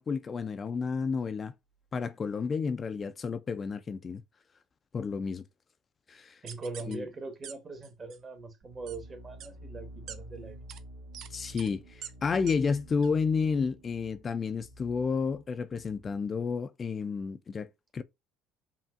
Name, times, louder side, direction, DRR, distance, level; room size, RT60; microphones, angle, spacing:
voice 1, 0.0-1.5 1.9-4.2 4.9-5.4 6.1-6.4 6.9-7.0 11.3-18.0, left 5 dB, 35° left, 0.3 m, -31 dB
voice 2, 6.4-10.6, right 3 dB, 35° right, 1.2 m, -41 dB
sound 1, 6.5-6.9 7.4-7.5 7.8-8.2 8.9-9.0 9.4-9.5 10.1-10.2 10.7-10.8 11.1-11.3 11.6-11.7 12.0-12.1 12.5-12.6 13.0-13.1, right 9 dB, 60° right, 0.5 m, -43 dB
sound 2, 8.6-16.3, right 1 dB, 85° right, 1.4 m, -50 dB
5.6 x 2.4 x 2.4 m
hypercardioid pair, 70°, 0 cm